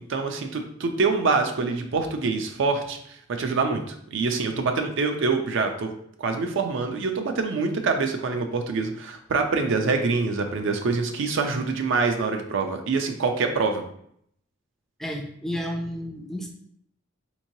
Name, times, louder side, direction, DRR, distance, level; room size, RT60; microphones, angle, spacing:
voice 1, 0.1-3.0 3.3-5.9 6.2-13.8, right 4 dB, 65° right, 4 dB, 0.4 m, -25 dB
voice 2, 15.0-16.5, equal, ahead, 1 dB, 0.4 m, -31 dB
3.7 x 3.0 x 2.7 m, 0.69 s
head